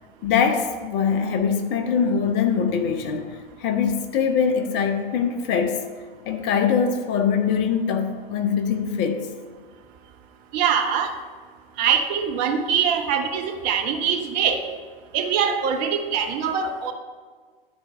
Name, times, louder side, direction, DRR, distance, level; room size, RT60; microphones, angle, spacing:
voice 1, 0.2-5.8 6.3-9.3, left 6 dB, 35° left, 0.8 m, -23 dB
voice 2, 10.5-11.1 11.8-14.6 15.1-16.9, right 7 dB, 45° right, 1.0 m, -23 dB
11.5 x 4.5 x 4.5 m
figure-of-eight pair, 90°, 29 cm